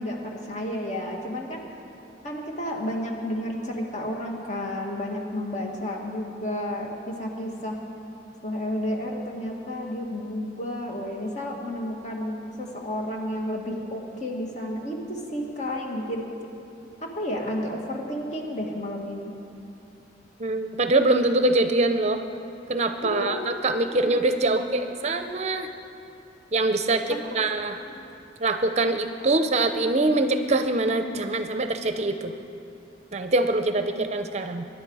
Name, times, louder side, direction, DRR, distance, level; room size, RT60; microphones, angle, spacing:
voice 1, 0.0-1.6 2.2-7.8 8.4-16.2 17.1-19.3 23.1-24.1 28.0-28.1 34.0-34.1, left 1 dB, 40° left, 0 dB, 2.0 m, -31 dB
voice 2, 20.4-22.2 22.7-25.7 26.5-27.8 28.4-32.3 33.1-34.7, right 2 dB, 40° right, 8 dB, 0.6 m, -24 dB
23.0 x 10.5 x 4.8 m, 2.7 s
head